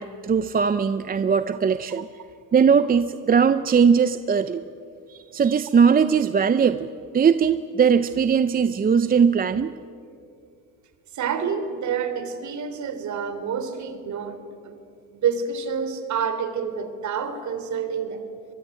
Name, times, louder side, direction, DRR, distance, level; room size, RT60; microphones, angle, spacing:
voice 1, 0.0-2.1 2.5-4.6 5.1-6.9 7.1-9.7, right 6 dB, 25° right, 12 dB, 0.7 m, -20 dB
voice 2, 11.1-14.8 15.1-18.2, right 6 dB, 50° right, 10 dB, 3.4 m, -28 dB
24.0 x 22.0 x 9.9 m, 2.5 s
cardioid pair, 125°, 37 cm